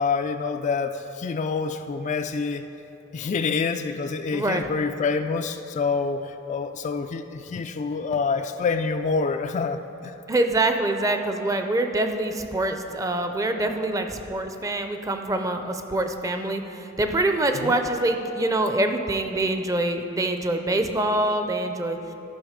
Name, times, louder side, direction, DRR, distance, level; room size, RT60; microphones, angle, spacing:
voice 1, 0.0-2.6 3.1-10.1 17.6-17.7, left 4 dB, 40° left, 8 dB, 0.3 m, -27 dB
voice 2, 4.3-4.7 10.3-22.0, right 2 dB, 15° right, 6 dB, 0.5 m, -25 dB
13.5 x 5.9 x 5.0 m, 2.9 s
head